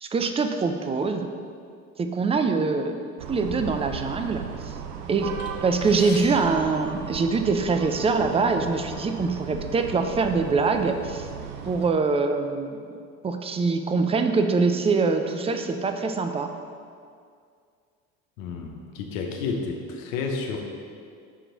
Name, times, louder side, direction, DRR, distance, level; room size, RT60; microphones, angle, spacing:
voice 1, 0.0-1.3 2.0-2.9 3.3-4.7 5.1-5.3 5.6-11.3 11.7-12.8 13.2-16.5, right 4 dB, 15° right, 7 dB, 0.4 m, -24 dB
sound 1, 3.2-11.9, right 7 dB, 75° right, 0.6 m, -36 dB
sound 2, 5.4-7.7 8.6-8.7 9.0-9.2 10.0-10.2 10.7-11.8, left 5 dB, 55° left, 0.8 m, -44 dB
voice 2, 18.4-20.7, left 4 dB, 85° left, 2 dB, 0.9 m, -31 dB
6.2 x 4.5 x 3.9 m, 2.2 s
hypercardioid pair, 75°, 39 cm